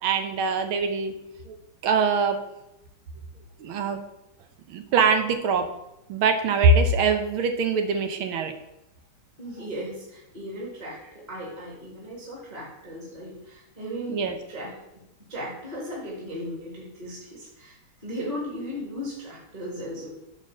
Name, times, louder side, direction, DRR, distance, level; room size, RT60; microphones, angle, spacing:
voice 1, 0.0-1.1 1.5-1.6 1.8-2.4 3.6-4.0 4.7-5.7 6.1-8.5 14.1-14.3, right 4 dB, 80° right, 6 dB, 1.8 m, -23 dB
voice 2, 9.4-14.7 15.3-20.1, equal, 20° right, -5 dB, 2.3 m, -36 dB
8.3 x 4.3 x 6.5 m, 0.87 s
omnidirectional pair, 2.2 m